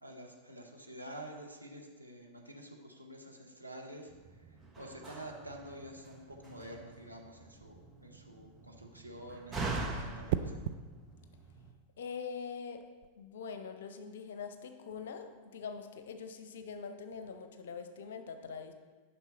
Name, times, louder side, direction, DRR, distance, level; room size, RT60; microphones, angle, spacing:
voice 1, 0.0-10.6, equal, 90° right, 0 dB, 1.0 m, -49 dB
Slam, 4.1-11.7, right 3 dB, 15° right, 1.0 m, -43 dB
sound 1, 7.5-7.8 10.3-10.8 12.8-13.1, right 10 dB, 50° right, 0.4 m, -35 dB
voice 2, 12.0-12.9 13.2-18.7, left 6 dB, 60° left, 8 dB, 0.7 m, -43 dB
10.0 x 5.9 x 4.1 m, 1.4 s
figure-of-eight pair, 90°, 0 cm